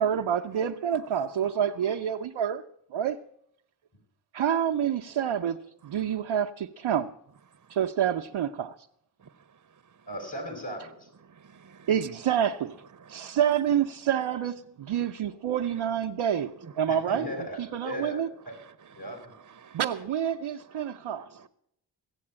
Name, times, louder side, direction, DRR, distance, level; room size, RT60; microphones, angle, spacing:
voice 1, 0.0-2.6 2.9-3.2 4.3-5.6 5.8-7.1 7.7-8.7 11.9-12.8 13.1-17.3 17.6-18.3 19.7-21.3, right 9 dB, 90° right, 0.6 m, -27 dB
voice 2, 10.1-11.1 16.9-18.5 18.9-19.3, equal, 55° left, 5.2 m, -37 dB
voice 3, 11.3-11.9 13.0-13.4 18.6-18.7 19.5-19.8 20.7-21.5, right 6 dB, 40° right, 0.7 m, -53 dB
16.0 x 7.8 x 8.7 m
cardioid pair, 45°, 45 cm